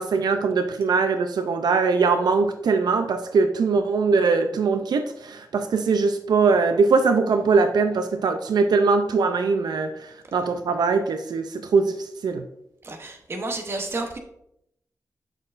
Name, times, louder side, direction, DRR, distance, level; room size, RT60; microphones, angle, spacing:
voice 1, 0.0-9.9 10.3-11.9 12.2-12.4, right 4 dB, 80° right, 7 dB, 0.4 m, -21 dB
voice 2, 12.8-14.2, right 2 dB, 35° right, 4 dB, 0.8 m, -31 dB
6.4 x 6.3 x 2.5 m, 0.76 s
wide cardioid pair, 170°, 7 cm